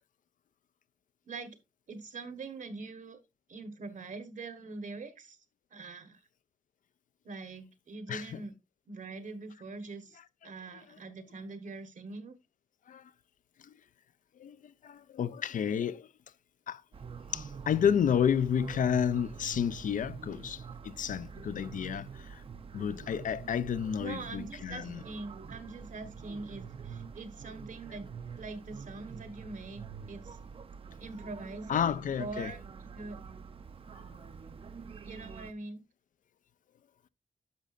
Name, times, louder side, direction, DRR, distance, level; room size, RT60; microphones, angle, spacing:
voice 1, 1.3-1.6 1.9-3.2 3.5-5.4 5.7-6.2 7.2-8.5 8.9-12.4 24.0-30.4 31.0-32.6 32.9-33.2 35.0-35.8, right 3 dB, 70° right, 1.3 m, -43 dB
voice 2, 8.1-8.4 12.9-13.1 13.6-13.7 14.4-16.1 16.7-16.8 17.3-22.4 22.7-25.0 31.7-32.5, left 8 dB, 75° left, 0.4 m, -31 dB
sound 1, 16.9-35.5, right 6 dB, 45° right, 0.5 m, -46 dB
10.5 x 6.5 x 2.5 m
wide cardioid pair, 165°, 14 cm